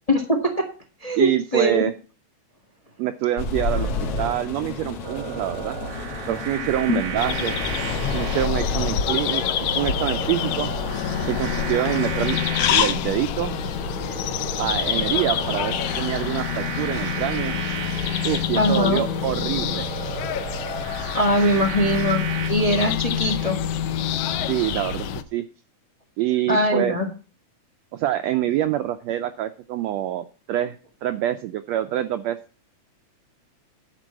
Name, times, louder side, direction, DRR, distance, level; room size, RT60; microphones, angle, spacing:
voice 1, 0.1-0.6 1.0-1.8 18.5-19.0 21.1-22.2 22.5-23.6 26.5-27.0, equal, 25° left, 4 dB, 0.8 m, -21 dB
voice 2, 1.2-1.9 3.0-5.8 6.3-7.6 8.1-10.7 11.3-12.4 12.7-13.6 14.6-17.6 18.2-19.9 21.9-22.0 24.5-25.1 25.3-25.4 26.2-27.0 27.9-30.8 31.0-32.4, right 13 dB, 90° right, 9 dB, 1.5 m, -26 dB
sound 1, 3.4-9.0, left 3 dB, 55° left, 1.9 m, -30 dB
sound 2, 5.0-22.5, right 8 dB, 65° right, 2.2 m, -35 dB
sound 3, 7.2-25.2, left 8 dB, 80° left, 1.3 m, -26 dB
11.5 x 4.6 x 7.4 m, 0.37 s
omnidirectional pair, 3.7 m